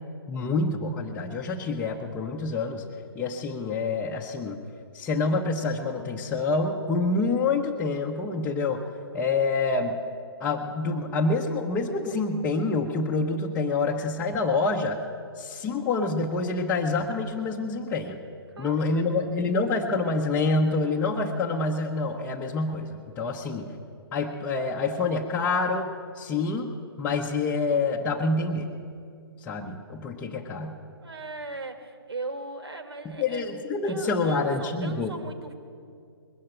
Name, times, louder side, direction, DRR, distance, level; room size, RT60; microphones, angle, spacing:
voice 1, 0.3-2.8 3.1-4.6 4.9-8.8 9.1-10.0 10.4-15.0 15.4-18.2 18.6-23.7 24.1-25.9 26.1-28.8 29.4-30.8 33.0-35.1, left 3 dB, 15° left, -3 dB, 0.8 m, -27 dB
voice 2, 18.6-19.3 31.0-33.5 33.8-35.5, right 3 dB, 80° right, 7 dB, 1.8 m, -38 dB
20.5 x 7.5 x 9.0 m, 2.3 s
figure-of-eight pair, 135°, 13 cm